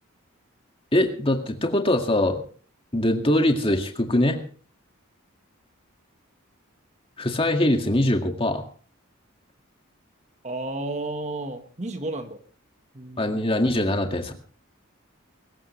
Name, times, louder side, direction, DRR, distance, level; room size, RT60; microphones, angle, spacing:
voice 1, 0.9-2.4 2.9-4.4 7.2-8.6 13.2-14.3, left 1 dB, 25° left, 4 dB, 2.0 m, -22 dB
voice 2, 10.4-12.4 12.9-13.4, right 2 dB, 35° right, 7 dB, 1.4 m, -32 dB
23.5 x 14.5 x 3.2 m, 0.42 s
head